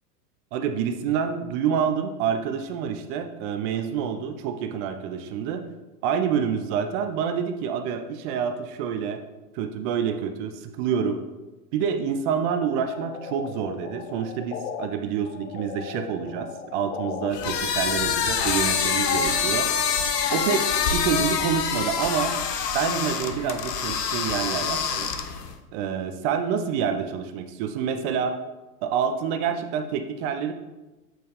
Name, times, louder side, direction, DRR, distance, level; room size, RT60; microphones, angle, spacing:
voice 1, 0.5-5.6 6.0-9.2 9.5-11.2 11.7-19.7 20.3-22.3 22.7-25.1 25.7-28.4 28.8-30.5, right 7 dB, 35° right, 7 dB, 0.5 m, -27 dB
sound 1, 12.8-14.9 15.2-17.3, left 8 dB, 50° left, 0.6 m, -37 dB
sound 2, 17.3-25.5, left 6 dB, 75° left, 0.9 m, -26 dB
7.7 x 4.2 x 3.3 m, 1.1 s
hypercardioid pair, 100°, 48 cm